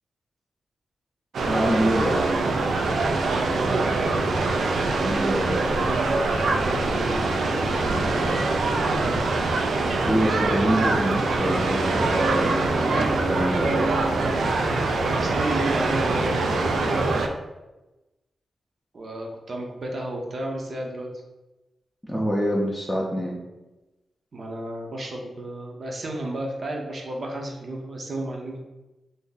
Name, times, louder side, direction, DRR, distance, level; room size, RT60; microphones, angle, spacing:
sound 1, 1.3-17.3, right 3 dB, 80° right, 0.3 m, -23 dB
voice 1, 1.4-2.1 5.0-5.7 8.0-9.3 10.0-12.7 13.3-13.7 22.1-23.4, equal, 5° right, -4 dB, 0.5 m, -26 dB
voice 2, 3.2-4.1 6.6-7.2 15.0-17.1 18.9-21.1 24.3-28.6, right 1 dB, 50° right, 0 dB, 0.6 m, -32 dB
2.6 x 2.5 x 3.8 m, 1.0 s
wide cardioid pair, 120°, 0 cm